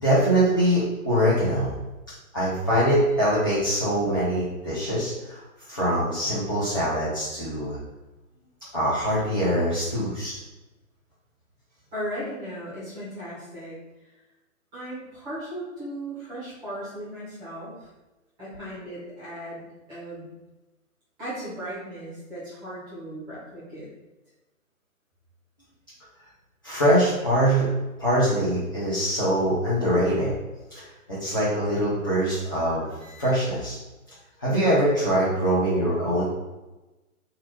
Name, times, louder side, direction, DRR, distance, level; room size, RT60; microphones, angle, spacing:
voice 1, 0.0-1.7 2.3-7.8 8.7-10.4 26.6-27.6 28.0-30.3 30.7-33.8 34.4-36.2, equal, 15° left, -13 dB, 0.6 m, -23 dB
voice 2, 11.9-13.8 14.7-17.9 18.4-20.3 21.2-23.9, equal, 10° right, -11 dB, 1.4 m, -36 dB
3.9 x 3.0 x 4.4 m, 1.1 s
hypercardioid pair, 170°, 42 cm